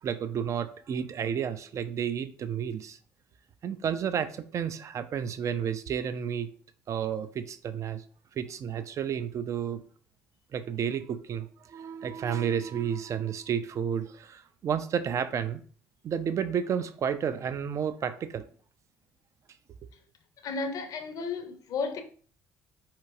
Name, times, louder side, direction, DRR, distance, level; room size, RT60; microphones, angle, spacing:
voice 1, 0.0-3.0 3.6-6.5 6.9-8.0 8.4-9.8 10.5-15.6 16.0-18.5, right 8 dB, 40° right, 0.4 m, -31 dB
voice 2, 20.4-22.0, left 4 dB, 50° left, 0.6 m, -33 dB
4.4 x 2.9 x 2.5 m
figure-of-eight pair, 50°, 8 cm